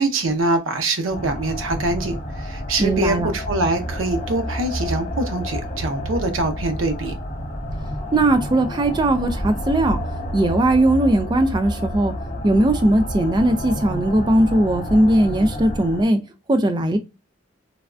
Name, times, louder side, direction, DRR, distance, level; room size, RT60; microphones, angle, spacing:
voice 1, 0.0-7.2, right 2 dB, 85° right, 0.6 m, -24 dB
sound 1, 1.1-16.0, equal, 40° left, 0.7 m, -29 dB
voice 2, 2.8-3.3 8.1-10.0 10.3-12.2 12.4-16.2 16.5-17.0, right 1 dB, 20° right, 0.3 m, -18 dB
3.3 x 2.2 x 2.4 m
head